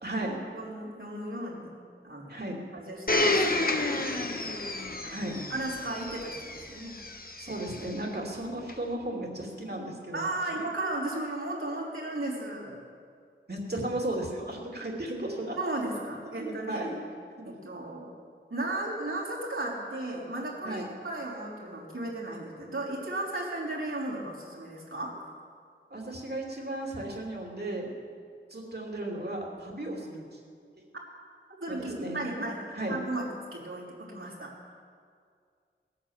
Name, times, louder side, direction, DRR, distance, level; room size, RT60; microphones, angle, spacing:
voice 1, 0.0-0.4 2.3-2.6 5.0-5.4 7.4-10.6 13.5-15.6 16.4-17.0 20.6-20.9 25.9-27.9 28.5-30.4 31.7-32.2 32.7-33.0, right 1 dB, 50° right, -1 dB, 2.9 m, -35 dB
voice 2, 0.5-1.7 2.0-2.4 2.7-4.6 5.5-7.0 10.1-12.8 15.6-16.9 17.5-18.1 18.5-25.2 31.6-34.7, right 2 dB, 80° right, -6 dB, 3.8 m, -35 dB
Domestic sounds home sounds, 3.1-7.9 8.7-8.8, left 2 dB, 45° left, 1.1 m, -30 dB
18.5 x 8.7 x 7.4 m, 2.2 s
wide cardioid pair, 45°, 21 cm